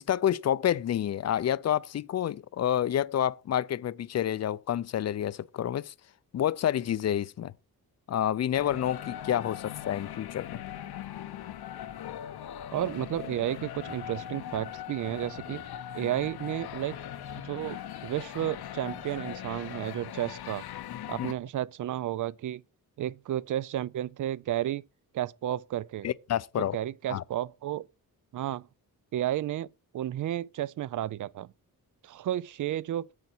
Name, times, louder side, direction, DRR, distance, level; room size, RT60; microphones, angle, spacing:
voice 1, 0.0-5.9 6.3-7.5 8.1-10.5 21.2-21.3 26.0-26.8 27.1-27.2, left 10 dB, 45° left, 0.5 m, -28 dB
sound 1, 8.5-21.3, left 11 dB, 90° left, 0.9 m, -40 dB
voice 2, 12.7-15.6 15.9-17.0 17.4-20.6 21.1-22.6 23.0-24.8 25.1-26.1 26.6-27.9 28.3-28.7 29.1-29.7 29.9-31.5 32.0-33.1, right 12 dB, 55° right, 0.4 m, -32 dB
9.5 x 8.0 x 4.4 m
wide cardioid pair, 165°, 37 cm